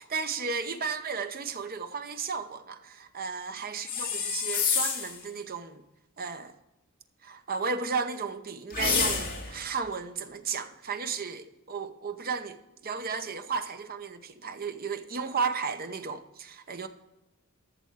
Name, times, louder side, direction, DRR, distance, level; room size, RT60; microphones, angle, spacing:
voice 1, 0.0-5.8 6.2-6.5 7.2-16.9, right 5 dB, 45° right, 0.8 m, -34 dB
sound 1, 3.9-5.2 8.7-9.6, left 6 dB, 40° left, 2.3 m, -28 dB
13.0 x 6.9 x 4.7 m
head